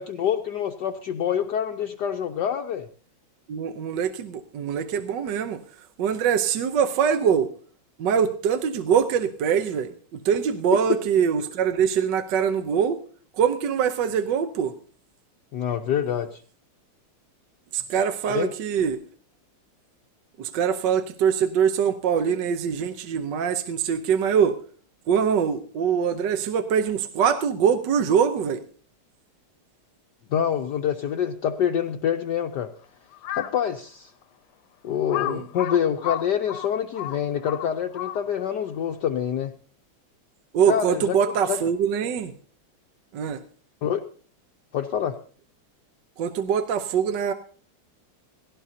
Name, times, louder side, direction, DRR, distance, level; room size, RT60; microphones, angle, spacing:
voice 1, 0.0-2.9 15.5-16.4 18.3-18.5 30.3-32.7 33.3-34.1 34.8-39.5 40.7-41.2 41.5-41.6 43.8-44.1 44.7-45.2, left 9 dB, 65° left, 4 dB, 1.2 m, -26 dB
voice 2, 3.5-7.5 8.0-13.0 13.3-14.7 17.7-19.0 20.4-24.5 25.1-28.6 35.2-35.5 40.5-42.3 43.1-43.4 46.2-47.3, right 7 dB, 65° right, 8 dB, 1.3 m, -23 dB
Crow, 33.1-33.6 34.2-34.3 35.1-38.5, left 13 dB, 80° left, 1.7 m, -32 dB
18.0 x 17.0 x 2.8 m, 0.42 s
omnidirectional pair, 2.4 m